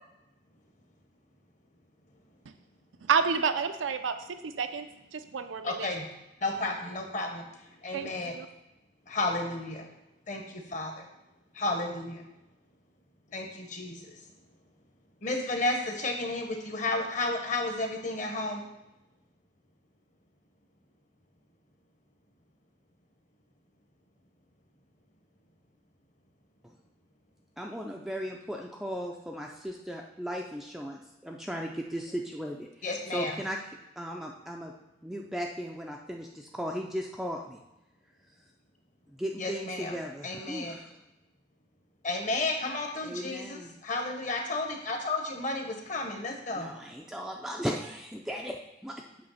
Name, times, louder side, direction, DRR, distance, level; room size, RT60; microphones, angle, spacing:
voice 1, 3.1-4.1 4.4-4.9 5.1-5.9 7.9-8.5, right 6 dB, 85° right, 8 dB, 0.5 m, -29 dB
voice 2, 5.6-6.1 6.4-7.4 7.8-8.4 9.1-9.9 10.3-11.0 11.5-12.2 13.3-14.0 15.2-18.6 32.8-33.4 39.4-40.0 40.2-40.8 42.0-46.7, left 2 dB, 40° left, 2 dB, 1.0 m, -32 dB
voice 3, 27.6-33.6 34.0-34.7 35.0-37.6 39.1-40.9 43.0-43.7 46.6-48.6 48.8-49.0, equal, ahead, 0 dB, 0.4 m, -37 dB
7.8 x 3.3 x 5.6 m, 0.92 s
head